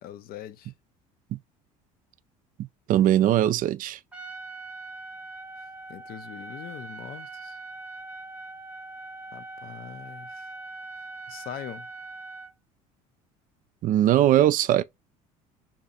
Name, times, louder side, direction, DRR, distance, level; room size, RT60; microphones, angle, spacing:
voice 1, 0.0-0.7 5.9-7.6 9.3-10.5 11.3-11.9, left 11 dB, 55° left, 0.5 m, -42 dB
voice 2, 2.6-4.0 13.8-14.8, right 12 dB, 50° right, 0.4 m, -21 dB
Trumpet, 4.1-12.5, right 3 dB, 5° right, 0.8 m, -41 dB
2.8 x 2.3 x 4.1 m
hypercardioid pair, 75°, 19 cm